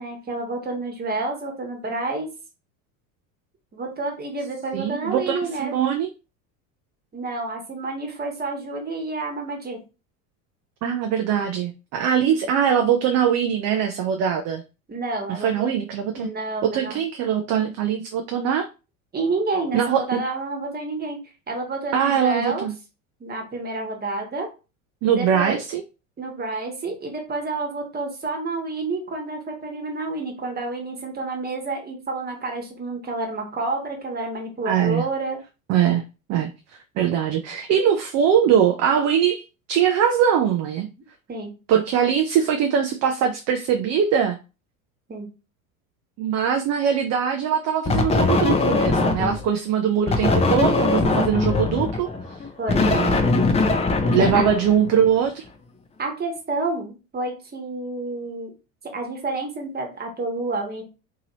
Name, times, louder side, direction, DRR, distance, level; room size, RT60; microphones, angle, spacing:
voice 1, 0.0-2.3 3.7-5.8 7.1-9.8 14.9-15.7 16.2-17.0 19.1-21.2 21.5-22.7 23.2-24.5 25.1-25.6 26.2-35.4 41.3-41.5 45.1-45.3 52.6-52.8 54.2-54.4 56.0-58.5 58.9-60.8, right 3 dB, 20° right, 2 dB, 1.2 m, -29 dB
voice 2, 4.7-6.1 10.8-14.6 15.3-16.3 16.6-18.7 19.7-20.2 21.9-22.7 25.0-25.8 34.7-35.1 35.7-36.0 36.3-36.5 37.0-39.4 39.7-40.9 41.7-44.4 46.2-52.4 52.8-53.4 54.0-55.4, right 8 dB, 40° right, 5 dB, 0.4 m, -22 dB
sound 1, 47.9-49.5 50.1-55.2, left 3 dB, 15° left, 0.5 m, -21 dB
2.8 x 2.7 x 2.9 m, 0.30 s
hypercardioid pair, 90°, 42 cm